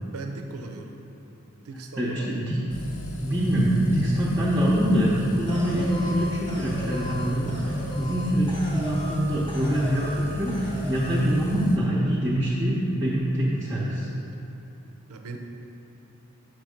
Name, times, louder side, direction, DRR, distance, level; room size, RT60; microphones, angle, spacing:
voice 1, 0.1-0.9 1.6-2.3 15.1-15.4, right 3 dB, 90° right, 4 dB, 0.6 m, -37 dB
voice 2, 2.0-2.6 3.2-14.1, equal, 10° right, -8 dB, 0.6 m, -24 dB
sound 1, 2.7-11.8, equal, 60° left, 0.7 m, -35 dB
sound 2, 5.5-9.2 9.5-10.2 10.5-11.2, left 1 dB, 20° left, 0.8 m, -37 dB
6.1 x 4.5 x 5.0 m, 2.9 s
head